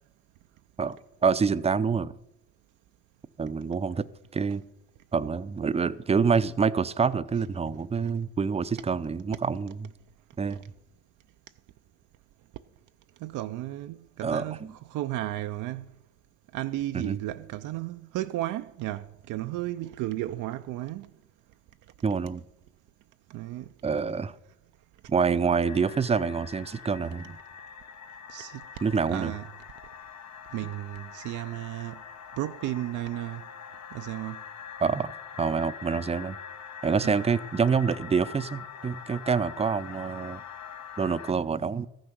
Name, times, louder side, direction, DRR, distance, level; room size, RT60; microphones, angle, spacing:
voice 1, 1.2-2.1 3.4-4.1 4.3-4.6 5.1-9.9 10.4-10.6 14.2-14.8 16.9-17.2 22.0-22.4 23.8-24.3 25.1-27.4 28.8-29.3 34.8-35.1 35.4-36.4 36.8-40.4 41.0-41.9, right 5 dB, 20° right, 0.5 m, -26 dB
voice 2, 13.2-14.6 14.9-15.9 16.5-21.1 23.3-23.7 28.3-28.6 29.1-29.4 30.5-32.0 32.4-33.4 33.9-34.4 37.0-37.2, right 15 dB, 80° right, 0.5 m, -33 dB
sound 1, 25.6-41.3, left 7 dB, 65° left, 0.8 m, -44 dB
13.5 x 6.4 x 6.0 m
cardioid pair, 90°, 30 cm